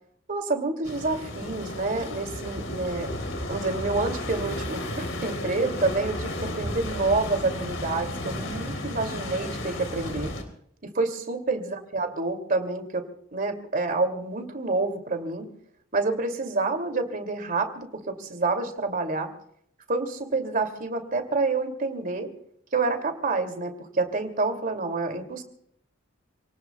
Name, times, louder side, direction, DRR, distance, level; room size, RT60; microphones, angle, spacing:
voice 1, 0.3-3.1 3.5-10.3 10.8-13.0 13.3-15.5 15.9-19.3 19.9-22.3 22.7-25.4, right 3 dB, 45° right, 6 dB, 2.6 m, -28 dB
sound 1, 0.8-10.4, left 1 dB, 75° left, 3.5 m, -33 dB
29.0 x 18.5 x 2.3 m, 0.69 s
head